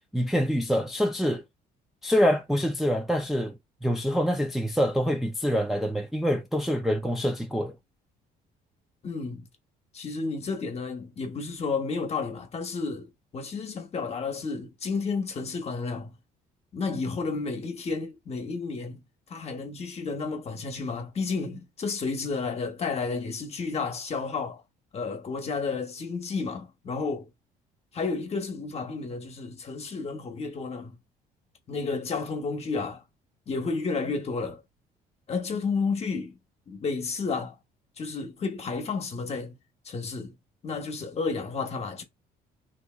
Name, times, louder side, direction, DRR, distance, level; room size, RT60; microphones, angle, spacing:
voice 1, 0.1-1.4 2.0-7.7, equal, ahead, 0.5 m, -26 dB
voice 2, 9.0-9.5 9.9-16.1 16.7-19.0 19.3-24.6 24.9-27.3 27.9-30.9 31.7-33.0 33.5-34.6 35.3-36.4 36.7-37.6 38.0-39.6 39.8-40.3 40.6-42.0, left 4 dB, 40° left, 1.0 m, -31 dB
3.3 x 2.8 x 2.3 m
cardioid pair, 110°, 17 cm